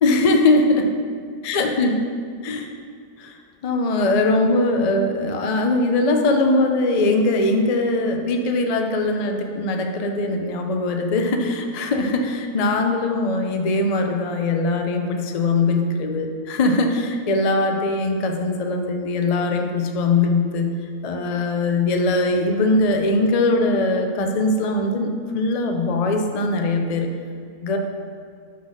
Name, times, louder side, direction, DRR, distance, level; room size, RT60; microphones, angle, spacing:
voice 1, 0.0-0.9 1.4-2.1 2.4-2.7 3.2-3.4 3.6-20.7 21.0-27.1 27.6-27.8, left 2 dB, 90° left, 3 dB, 0.3 m, -21 dB
5.7 x 5.6 x 6.3 m, 2.1 s
omnidirectional pair, 1.6 m